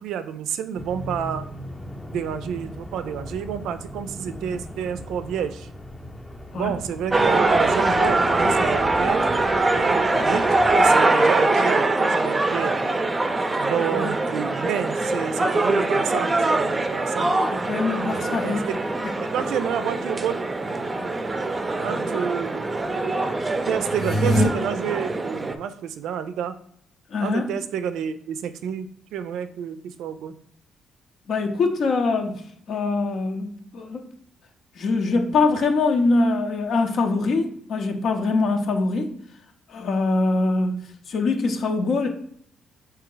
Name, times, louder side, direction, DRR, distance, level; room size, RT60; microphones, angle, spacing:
voice 1, 0.0-1.5 2.1-5.7 6.5-9.3 9.7-10.5 10.8-12.8 13.6-17.3 18.1-18.8 19.3-20.4 21.8-22.7 23.7-26.6 27.2-30.4, right 8 dB, 85° right, 11 dB, 0.4 m, -29 dB
sound 1, 0.8-10.9, left 1 dB, 15° left, 0.6 m, -37 dB
sound 2, 7.1-25.6, right 2 dB, 25° right, 0.5 m, -23 dB
voice 2, 17.5-18.7 27.1-27.6 31.3-32.4 32.7-34.1 34.8-39.1 39.7-40.8 41.1-42.1, left 3 dB, 65° left, 4 dB, 0.7 m, -23 dB
sound 3, 23.8-24.4, equal, 80° left, 1.2 m, -21 dB
4.5 x 2.8 x 3.8 m, 0.66 s
cardioid pair, 90°, 0 cm